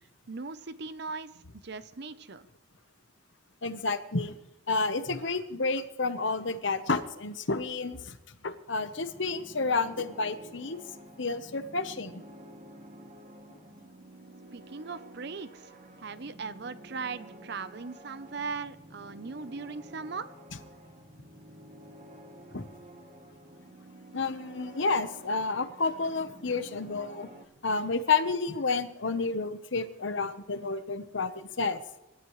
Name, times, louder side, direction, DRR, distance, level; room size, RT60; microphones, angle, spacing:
voice 1, 0.3-1.3 1.6-2.4 14.5-15.7 16.0-20.3, right 4 dB, 55° right, 13 dB, 0.7 m, -39 dB
voice 2, 3.6-4.3 4.7-8.2 8.4-10.8 11.2-12.2 22.5-22.7 24.1-27.3 27.6-31.8, left 3 dB, 60° left, 11 dB, 1.0 m, -30 dB
sound 1, 8.7-27.5, right 1 dB, 35° right, 1.3 m, -50 dB
25.5 x 12.5 x 3.2 m, 0.95 s
head